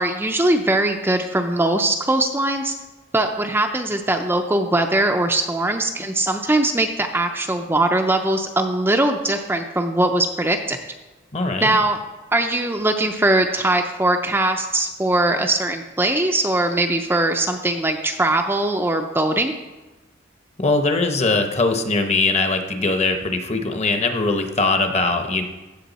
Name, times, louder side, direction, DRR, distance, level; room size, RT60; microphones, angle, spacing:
voice 1, 0.0-2.7 3.1-10.8 11.6-12.0 12.3-19.5, right 2 dB, 10° right, 4 dB, 0.4 m, -21 dB
voice 2, 11.3-11.8 20.6-25.4, left 3 dB, 35° left, 6 dB, 0.9 m, -21 dB
15.0 x 6.2 x 4.1 m, 1.2 s
head